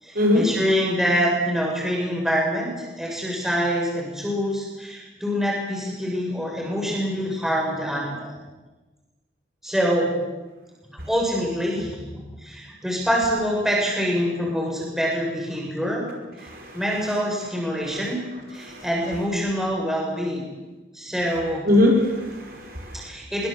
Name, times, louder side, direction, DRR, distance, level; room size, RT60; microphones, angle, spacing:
voice 1, 0.0-8.3 9.6-10.1 10.9-16.0 16.4-18.2 18.5-20.5 20.9-21.7 22.9-23.5, equal, ahead, -2 dB, 6.8 m, -25 dB
voice 2, 16.4-16.8 17.8-18.0 18.6-18.8 21.7-23.0, left 1 dB, 50° right, 0 dB, 5.3 m, -22 dB
24.5 x 23.0 x 7.9 m, 1.2 s
head